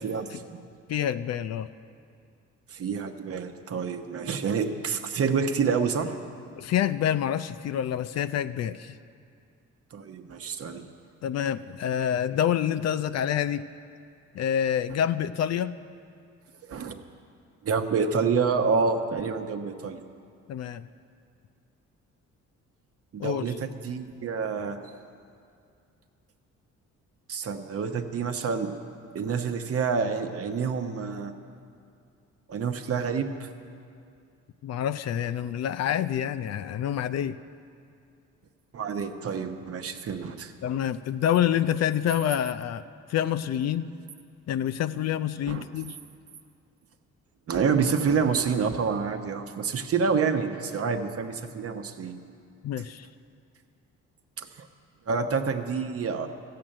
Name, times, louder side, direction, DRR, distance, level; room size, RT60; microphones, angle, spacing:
voice 1, 0.0-0.6 2.7-6.1 9.9-10.8 16.7-17.0 17.6-20.0 23.1-24.8 27.3-28.7 29.1-31.3 32.5-33.5 38.7-40.5 45.5-45.6 47.5-52.2 54.4-54.7 55.1-56.3, right 5 dB, 50° right, 6 dB, 1.0 m, -28 dB
voice 2, 0.9-1.7 6.5-9.0 11.2-13.6 14.3-15.7 20.5-20.8 23.2-23.6 24.6-24.7 34.6-37.4 40.6-42.8 43.1-43.9 44.5-46.0 52.6-53.1, left 10 dB, 60° left, 13 dB, 0.5 m, -27 dB
13.5 x 7.7 x 8.8 m, 2.4 s
cardioid pair, 90°, 30 cm